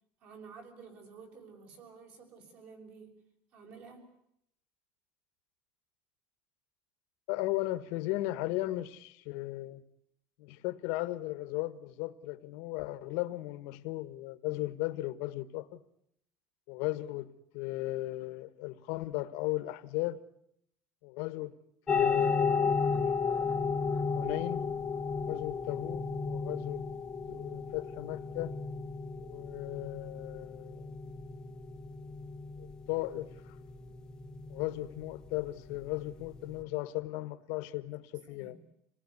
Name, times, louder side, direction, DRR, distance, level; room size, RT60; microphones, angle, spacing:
voice 1, 0.2-3.2 3.5-4.1 38.3-38.6, right 5 dB, 45° right, 6.4 m, -51 dB
voice 2, 7.3-9.8 10.4-15.8 16.7-20.2 21.0-21.5 21.9-23.5 24.2-24.6 25.1-26.9 27.3-28.5 29.2-30.9 32.6-33.6 34.5-38.6, left 18 dB, 65° left, 1.5 m, -36 dB
sound 1, 21.9-36.6, left 5 dB, 15° left, 1.1 m, -34 dB
27.0 x 19.0 x 9.7 m
cardioid pair, 175°, 4 cm